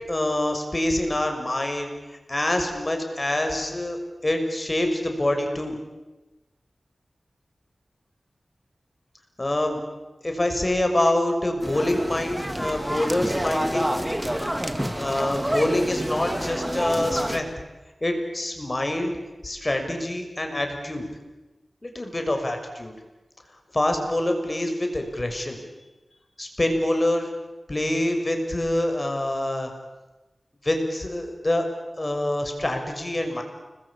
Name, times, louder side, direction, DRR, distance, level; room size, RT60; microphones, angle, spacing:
voice 1, 0.1-1.9 2.3-5.8 9.4-9.8 10.2-13.9 15.0-17.5 18.0-19.1 19.4-21.1 21.8-22.9 23.7-25.6 26.4-27.3 27.7-29.7 30.6-31.6 32.0-33.4, left 1 dB, 30° left, 5 dB, 6.4 m, -25 dB
sound 1, 11.6-17.4, equal, 10° right, 2.5 m, -28 dB
29.5 x 21.5 x 8.7 m, 1.1 s
cardioid pair, 50°, 0 cm